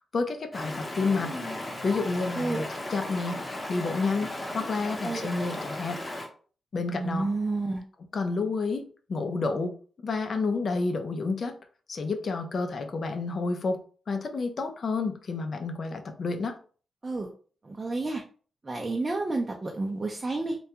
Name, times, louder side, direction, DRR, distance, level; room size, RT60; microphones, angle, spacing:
voice 1, 0.1-1.3 1.8-2.6 2.9-3.4 3.7-6.0 6.7-7.3 8.1-9.7 10.0-11.6 11.9-16.6, left 3 dB, 55° left, 6 dB, 0.4 m, -30 dB
Stream, 0.5-6.3, left 1 dB, 20° left, 0.8 m, -36 dB
voice 2, 6.9-7.8 17.0-17.3 17.6-18.2 18.6-20.6, right 2 dB, 30° right, 1 dB, 0.4 m, -30 dB
2.3 x 2.2 x 2.8 m, 0.41 s
cardioid pair, 75°, 0 cm